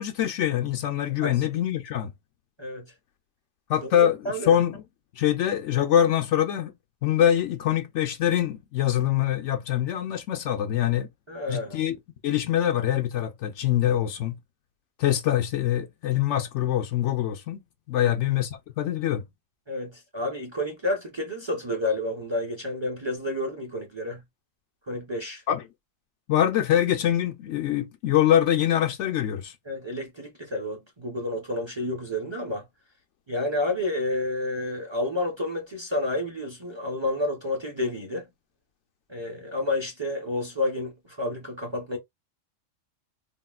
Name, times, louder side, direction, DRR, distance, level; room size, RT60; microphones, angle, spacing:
voice 1, 0.0-2.1 3.7-4.8 5.2-6.7 7.0-11.1 11.5-11.9 12.2-14.4 15.0-17.6 17.9-18.5 18.8-19.2 25.5-25.6 26.3-29.5, left 11 dB, 70° left, 0.8 m, -24 dB
voice 2, 3.8-4.5 11.3-11.8 18.0-18.1 19.7-24.2 24.9-25.4 29.7-32.6 33.3-38.3 39.1-42.0, left 1 dB, 25° right, 0.7 m, -30 dB
3.5 x 2.3 x 2.3 m
omnidirectional pair, 1.4 m